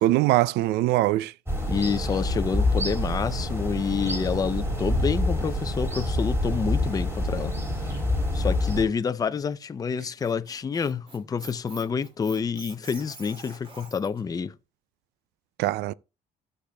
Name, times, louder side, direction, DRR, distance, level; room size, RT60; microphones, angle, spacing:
voice 1, 0.0-1.3 15.6-15.9, right 16 dB, 80° right, 0.4 m, -22 dB
sound 1, 1.5-8.8, left 1 dB, 15° right, 3.6 m, -27 dB
voice 2, 1.7-7.5 8.3-14.5, left 6 dB, 20° left, 0.5 m, -28 dB
Squeak, 10.0-14.2, right 3 dB, 35° right, 2.8 m, -46 dB
15.5 x 6.7 x 2.3 m
cardioid pair, 110°, 17 cm